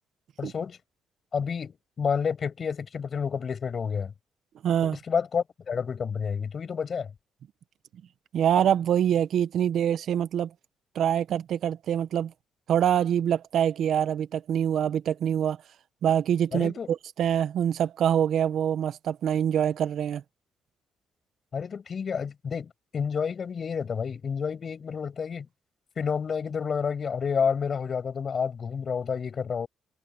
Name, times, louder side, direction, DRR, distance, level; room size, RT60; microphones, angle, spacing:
voice 1, 0.4-0.8 1.3-4.1 4.8-7.1 16.5-16.9 21.5-25.5 26.0-29.7, left 6 dB, 45° left, 7.7 m, -30 dB
voice 2, 4.6-5.0 8.3-10.5 10.9-12.3 12.7-15.6 16.0-20.2, right 9 dB, 70° right, 1.1 m, -25 dB
cardioid pair, 90°, 0 cm